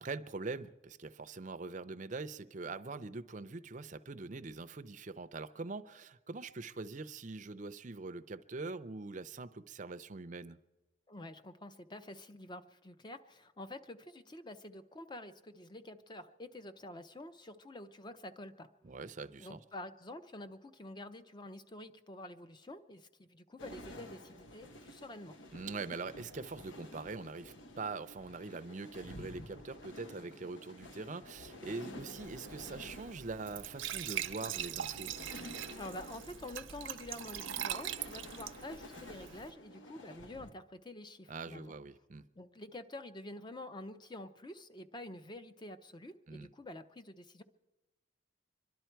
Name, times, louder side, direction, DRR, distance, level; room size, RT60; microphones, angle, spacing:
voice 1, 0.0-10.6 18.8-19.6 25.5-35.1 41.3-42.3 46.3-46.5, right 3 dB, 40° right, 0.5 m, -43 dB
voice 2, 11.1-18.7 19.4-25.4 35.8-41.7 42.4-47.4, left 1 dB, 20° left, 0.6 m, -48 dB
sound 1, 23.6-40.5, left 1 dB, 70° left, 1.1 m, -51 dB
Glass / Trickle dribble / Fill (with liquid), 32.2-39.5, right 11 dB, 80° right, 0.6 m, -42 dB
26.5 x 11.5 x 4.6 m
head